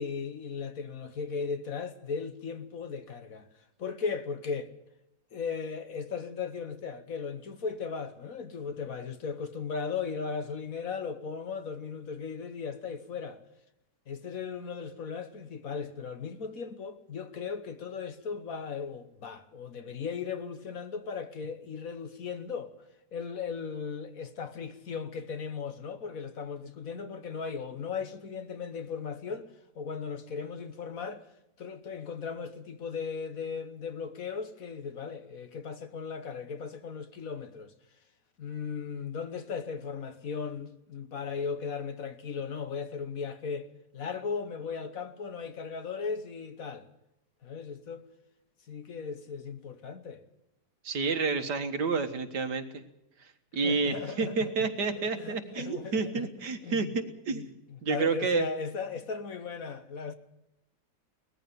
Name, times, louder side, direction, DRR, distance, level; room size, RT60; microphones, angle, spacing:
voice 1, 0.0-3.5 3.8-4.7 5.3-13.4 14.1-22.7 23.1-29.5 29.7-31.2 31.6-37.7 38.4-43.7 43.9-46.9 47.4-48.0 48.7-50.2 53.6-54.5 54.9-57.0 57.3-60.1, left 5 dB, 55° left, 1.5 m, -37 dB
voice 2, 50.8-52.8 53.5-57.5 57.8-58.5, right 4 dB, 70° right, 2.0 m, -30 dB
19.5 x 14.5 x 9.4 m
omnidirectional pair, 1.8 m